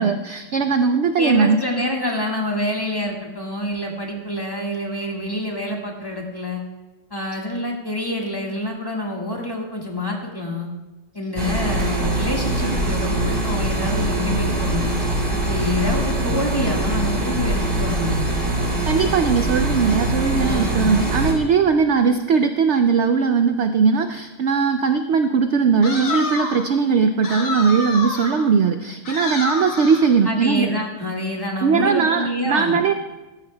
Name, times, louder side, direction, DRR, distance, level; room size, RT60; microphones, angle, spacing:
voice 1, 0.0-1.6 18.9-30.7 31.6-32.9, right 5 dB, 65° right, 8 dB, 0.7 m, -19 dB
voice 2, 1.2-6.6 7.1-10.7 11.1-15.0 15.5-18.4 20.3-20.9 30.2-32.8, left 1 dB, 15° left, -1 dB, 1.6 m, -27 dB
sound 1, 11.4-21.3, right 2 dB, 25° right, 2.6 m, -23 dB
sound 2, 25.8-26.7 27.2-28.5 29.1-30.1, left 3 dB, 55° left, 1.8 m, -28 dB
16.5 x 14.0 x 2.2 m, 1.1 s
omnidirectional pair, 1.7 m